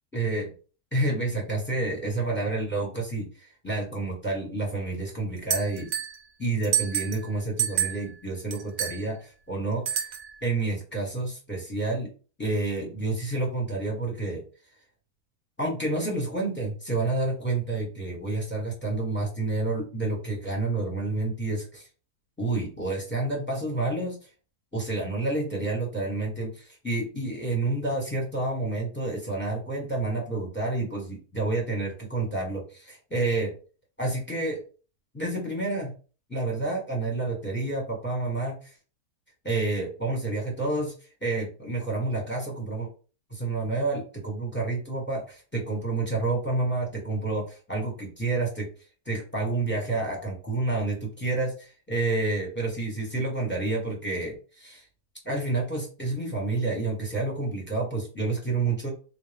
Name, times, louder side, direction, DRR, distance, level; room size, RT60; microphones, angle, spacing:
voice 1, 0.1-0.5 0.9-5.9 6.4-10.1 10.4-12.1 12.4-14.4 15.6-21.9 22.4-24.3 24.7-33.5 34.0-34.6 35.1-35.9 36.3-38.7 39.4-40.9 41.2-42.9 43.3-48.7 49.0-54.9 55.2-58.9, right 2 dB, 10° left, -1 dB, 1.2 m, -29 dB
sound 1, 5.5-6.2 6.6-7.3 7.6-8.1 8.5-9.0 9.9-10.4, right 10 dB, 65° right, 1.2 m, -28 dB
3.8 x 2.6 x 3.4 m, 0.37 s
omnidirectional pair, 1.6 m